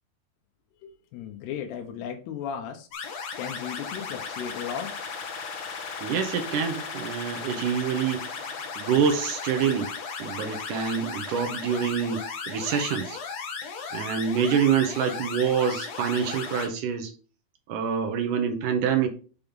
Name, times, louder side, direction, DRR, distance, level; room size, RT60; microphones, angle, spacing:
voice 1, 0.8-2.9 3.4-5.6, left 8 dB, 80° left, 2.9 m, -36 dB
sound 1, 2.9-16.7, left 5 dB, 55° left, 2.1 m, -36 dB
voice 2, 6.0-9.9 10.2-13.2 13.9-17.1 17.7-19.1, right 7 dB, 70° right, 2.0 m, -26 dB
7.0 x 5.4 x 3.7 m
omnidirectional pair, 4.8 m